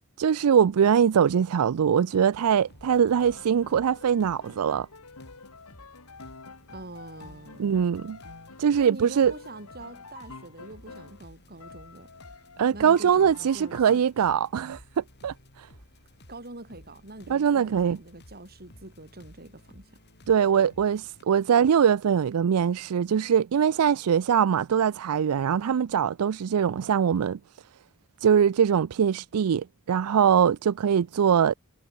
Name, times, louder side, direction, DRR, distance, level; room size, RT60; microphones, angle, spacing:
voice 1, 0.2-4.9 7.6-8.2 8.6-9.3 12.6-15.7 17.3-18.0 20.3-27.4 28.2-31.5, right 8 dB, 85° right, 0.4 m, -22 dB
sound 1, 2.3-21.2, left 1 dB, 50° left, 6.1 m, -54 dB
Piano, 3.2-11.3 11.6-14.0, left 4 dB, 75° left, 2.1 m, -48 dB
voice 2, 6.7-7.8 8.8-12.4 12.7-14.3 16.3-20.0, right 2 dB, 45° right, 6.6 m, -44 dB
head